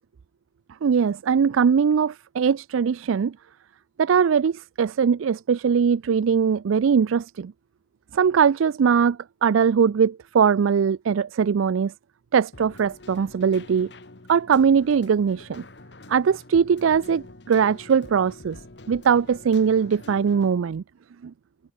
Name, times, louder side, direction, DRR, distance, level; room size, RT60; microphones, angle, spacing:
voice 1, 0.8-3.4 4.0-7.5 8.1-11.9 12.3-13.9 14.3-15.6 16.1-18.6 18.9-20.8 21.2-21.3, right 6 dB, 90° right, 0.4 m, -21 dB
Keyboard (musical), 12.5-20.5, left 2 dB, 60° left, 1.7 m, -45 dB
head